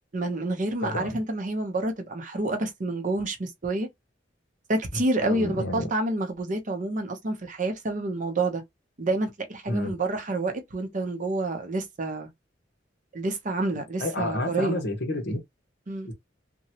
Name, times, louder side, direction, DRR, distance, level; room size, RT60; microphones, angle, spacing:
voice 1, 0.1-3.9 4.7-8.6 9.0-12.3 13.1-14.8 15.9-16.1, right 2 dB, 45° right, 0.7 m, -28 dB
voice 2, 0.8-1.2 5.2-5.9 9.7-9.9 14.0-15.4 16.0-16.1, left 1 dB, 65° left, 1.1 m, -29 dB
2.9 x 2.2 x 2.8 m
head